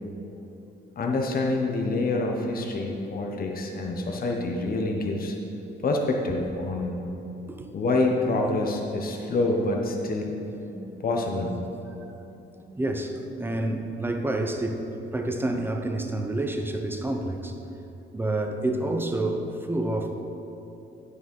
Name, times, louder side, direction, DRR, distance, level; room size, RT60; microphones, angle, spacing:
voice 1, 1.0-5.3 5.8-7.0 7.7-10.4 11.0-11.6, left 2 dB, 45° left, 1 dB, 1.1 m, -26 dB
voice 2, 10.7-11.0 11.4-12.0 12.5-14.8 15.1-17.6 18.1-20.2, right 2 dB, 10° right, 4 dB, 0.9 m, -29 dB
9.5 x 6.4 x 5.4 m, 2.9 s
cardioid pair, 90°, 20 cm